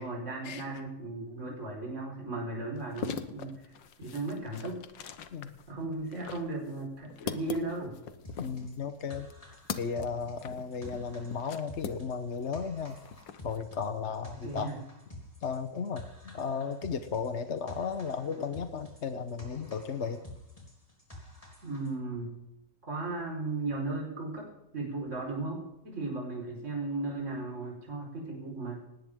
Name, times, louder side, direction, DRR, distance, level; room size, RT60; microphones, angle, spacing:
voice 1, 0.0-3.5 4.0-4.8 5.7-7.9 14.4-14.8 21.6-22.3 22.9-24.5 24.7-28.8, right 2 dB, 40° right, -1 dB, 5.0 m, -36 dB
sound 1, 2.8-12.5 12.8-13.6, left 7 dB, 75° left, 1.7 m, -42 dB
sound 2, 8.2-21.9, left 1 dB, 15° left, 3.9 m, -50 dB
voice 2, 8.4-9.3 9.8-13.0 13.4-14.7 15.4-20.2, left 6 dB, 45° left, 8 dB, 1.0 m, -35 dB
19.5 x 18.0 x 3.7 m, 0.87 s
omnidirectional pair, 2.0 m